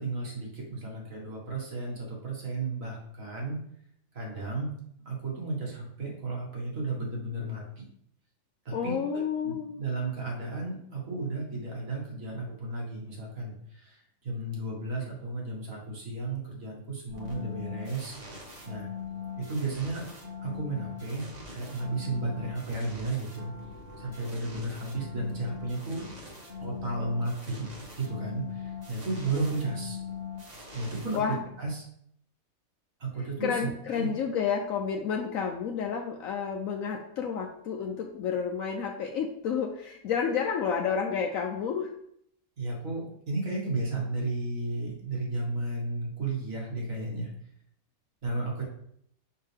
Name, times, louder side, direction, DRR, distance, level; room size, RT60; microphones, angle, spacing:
voice 1, 0.0-3.6 4.1-4.8 5.1-7.9 8.7-18.1 18.7-18.9 19.4-20.0 20.4-23.5 24.0-26.1 26.6-27.7 28.0-30.0 30.7-31.8 33.0-34.1 42.6-47.3 48.2-48.6, right 2 dB, 65° right, -3 dB, 2.0 m, -33 dB
voice 2, 8.7-9.8 31.1-31.4 33.4-41.9, left 6 dB, 75° left, 2 dB, 1.0 m, -30 dB
sound 1, 17.1-31.7, left 6 dB, 30° right, 1.3 m, -41 dB
5.6 x 5.4 x 3.4 m, 0.69 s
omnidirectional pair, 1.5 m